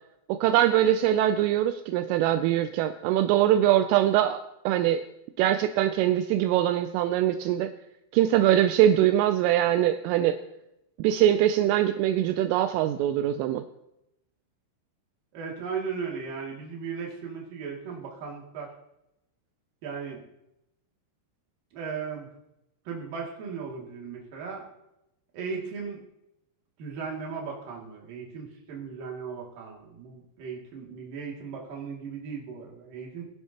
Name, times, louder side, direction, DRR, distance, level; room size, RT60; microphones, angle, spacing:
voice 1, 0.3-5.0 5.4-7.7 8.1-10.4 11.0-13.6, right 12 dB, 85° right, 9 dB, 3.1 m, -23 dB
voice 2, 15.3-18.7 19.8-20.2 21.7-22.3 22.9-24.7 25.3-26.0 26.8-33.3, right 5 dB, 50° right, -2 dB, 3.7 m, -37 dB
22.5 x 11.0 x 3.0 m, 0.85 s
omnidirectional pair, 5.9 m